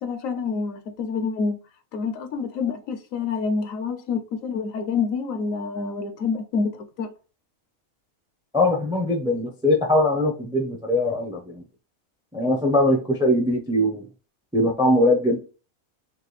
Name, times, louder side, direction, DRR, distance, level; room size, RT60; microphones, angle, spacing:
voice 1, 0.0-1.6 1.9-7.1, left 5 dB, 70° left, 1.0 m, -27 dB
voice 2, 8.5-11.6 12.3-14.1 14.5-15.4, left 1 dB, 5° right, 0.4 m, -21 dB
5.6 x 2.3 x 3.1 m
omnidirectional pair, 1.5 m